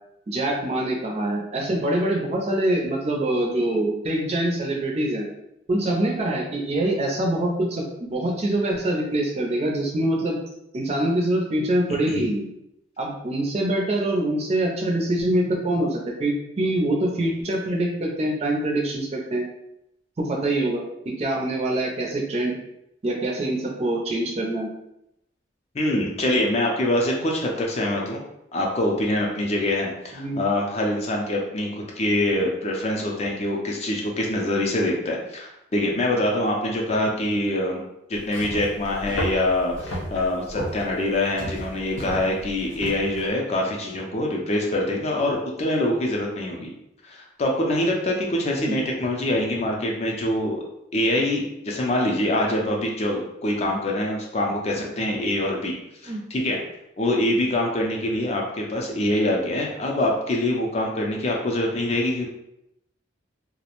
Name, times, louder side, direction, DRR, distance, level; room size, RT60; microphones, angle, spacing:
voice 1, 0.3-5.3 5.7-10.4 10.7-12.4 13.0-19.4 20.2-20.8 21.2-22.5 23.0-24.7 30.1-30.4 48.6-48.8 56.1-56.2, right 1 dB, 35° right, -1 dB, 0.4 m, -24 dB
voice 2, 25.7-28.2 28.5-37.8 38.1-46.7 47.0-50.6 50.9-55.8 56.0-56.6 57.0-62.3, left 1 dB, 35° left, 0 dB, 0.4 m, -24 dB
sound 1, 38.2-43.3, equal, 90° left, 0.7 m, -33 dB
2.4 x 2.0 x 2.9 m, 0.81 s
head